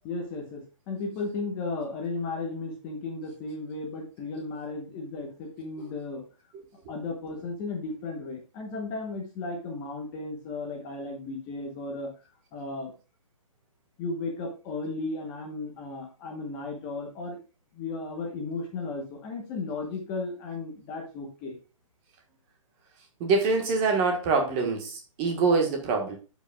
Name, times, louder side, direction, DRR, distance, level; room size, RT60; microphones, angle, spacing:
voice 1, 0.0-6.3 6.9-12.1 12.5-12.9 14.0-17.4 17.7-21.6, left 3 dB, 15° left, 1.0 m, -35 dB
voice 2, 23.2-26.2, right 4 dB, 20° right, 1.3 m, -25 dB
12.0 x 5.1 x 2.3 m
hypercardioid pair, 160°, 18 cm